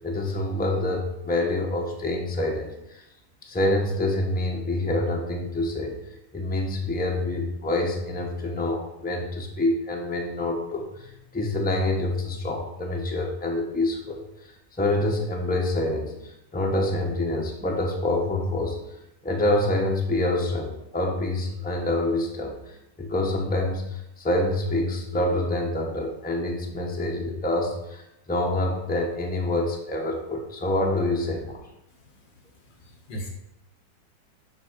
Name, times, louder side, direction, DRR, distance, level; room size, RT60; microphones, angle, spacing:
voice 1, 0.0-3.0 3.4-5.9 6.3-14.2 14.8-18.8 19.2-22.5 23.0-31.6, left 1 dB, 5° left, 0 dB, 1.2 m, -26 dB
voice 2, 31.9-33.3, equal, 85° left, 2 dB, 2.7 m, -41 dB
10.5 x 4.4 x 6.3 m, 0.86 s
omnidirectional pair, 1.9 m